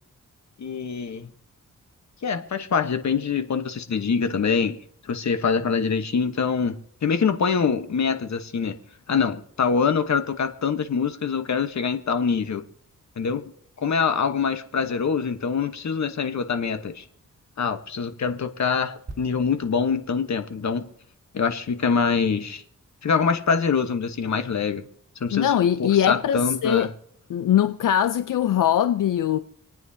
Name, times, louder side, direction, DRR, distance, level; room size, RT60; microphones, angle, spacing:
voice 1, 0.6-1.3 2.2-4.8 5.1-6.8 7.0-8.8 9.1-12.6 13.2-13.4 13.8-17.0 17.6-20.8 21.3-22.6 23.0-24.8 25.2-25.5 26.1-26.9, left 6 dB, 60° left, 1.1 m, -24 dB
sound 1, 19.1-22.7 23.0-23.2, right 3 dB, 55° right, 3.2 m, -47 dB
voice 2, 25.3-26.9 27.3-29.4, left 10 dB, 80° left, 0.5 m, -21 dB
27.0 x 9.2 x 2.7 m
wide cardioid pair, 100°, 32 cm